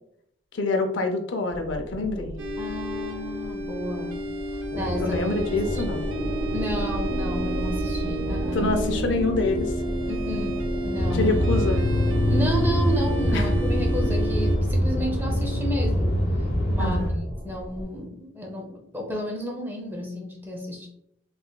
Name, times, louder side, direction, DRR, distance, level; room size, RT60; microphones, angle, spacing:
voice 1, 0.5-2.4 5.0-6.1 8.5-9.7 11.1-11.8 13.3-13.5 16.8-17.2, left 3 dB, 75° left, 5 dB, 0.6 m, -26 dB
sound 1, 1.5-17.8, equal, 55° right, 1.0 m, -33 dB
sound 2, 2.4-14.6, right 2 dB, 80° right, 0.6 m, -31 dB
voice 2, 2.6-4.2 4.7-5.2 5.7-5.8 6.5-8.7 10.1-11.3 12.3-16.2 16.7-17.0 17.4-20.9, equal, 10° right, 1 dB, 0.6 m, -32 dB
sound 3, 10.9-17.1, equal, 55° left, 1.1 m, -24 dB
4.0 x 3.3 x 2.3 m, 0.75 s
head